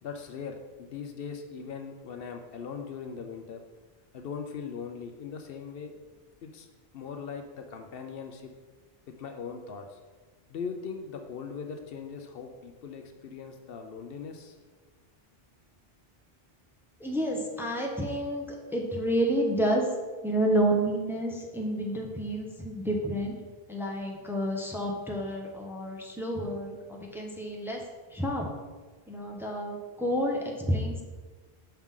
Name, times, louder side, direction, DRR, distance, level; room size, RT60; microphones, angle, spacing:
voice 1, 0.0-3.6 4.1-5.9 6.4-6.7 6.9-8.5 9.1-10.0 10.5-14.6, left 6 dB, 70° left, 5 dB, 0.8 m, -40 dB
voice 2, 17.0-18.5 18.7-19.9 20.2-23.3 23.7-27.8 28.1-28.5 29.1-31.0, right 1 dB, ahead, -1 dB, 0.8 m, -29 dB
6.0 x 5.7 x 3.6 m, 1.4 s
omnidirectional pair, 1.0 m